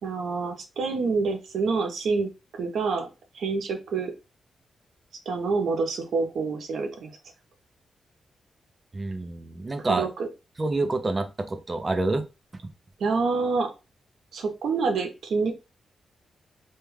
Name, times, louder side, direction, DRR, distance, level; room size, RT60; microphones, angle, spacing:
voice 1, 0.0-3.1 3.3-4.1 5.3-7.1 9.9-10.3 13.0-13.7 14.3-15.5, right 4 dB, 80° right, 0.7 m, -27 dB
voice 2, 8.9-10.1 10.6-12.2 12.6-12.7, right 2 dB, 25° right, 0.4 m, -27 dB
2.2 x 2.2 x 3.1 m
wide cardioid pair, 120°, 0 cm